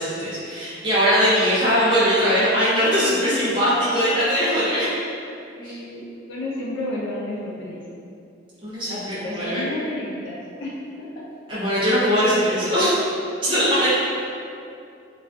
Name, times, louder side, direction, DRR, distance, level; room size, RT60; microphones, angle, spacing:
voice 1, 0.0-4.9 5.6-5.7 8.6-9.6 11.5-12.9 13.4-13.9, equal, 25° right, -12 dB, 0.6 m, -20 dB
voice 2, 2.9-3.7 5.5-7.8 8.9-11.2 13.5-13.6, left 1 dB, 70° left, -5 dB, 0.4 m, -31 dB
2.5 x 2.3 x 2.2 m, 2.6 s
head